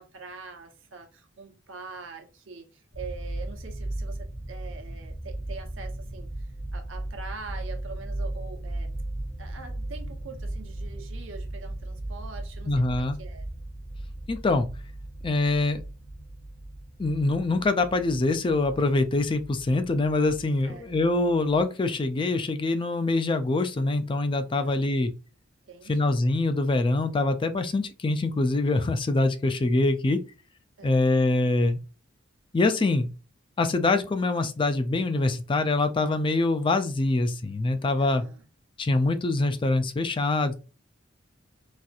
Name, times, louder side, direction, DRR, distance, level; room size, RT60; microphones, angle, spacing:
voice 1, 0.0-6.3 6.7-9.0 9.4-13.4 20.6-21.2 24.6-24.9 25.7-26.1 30.8-31.2 38.0-38.5, right 4 dB, 75° right, 0.9 m, -44 dB
sound 1, 2.9-21.6, right 1 dB, 80° left, 1.6 m, -37 dB
voice 2, 12.7-13.2 14.3-14.7 15.2-15.8 17.0-25.1 25.9-30.2 30.8-31.8 32.5-33.1 33.6-38.2 38.8-40.5, left 2 dB, 25° left, 0.4 m, -24 dB
4.1 x 2.5 x 2.4 m
head